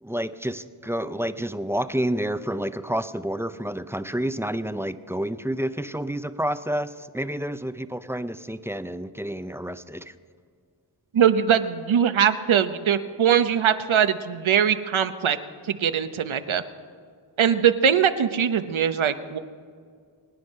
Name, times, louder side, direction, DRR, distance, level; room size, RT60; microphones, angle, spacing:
voice 1, 0.0-10.1, right 1 dB, 5° right, 12 dB, 0.6 m, -29 dB
voice 2, 11.1-15.4 15.7-16.6 17.4-19.4, right 8 dB, 75° right, 10 dB, 1.0 m, -21 dB
25.0 x 9.8 x 5.4 m, 2.1 s
wide cardioid pair, 70°, 48 cm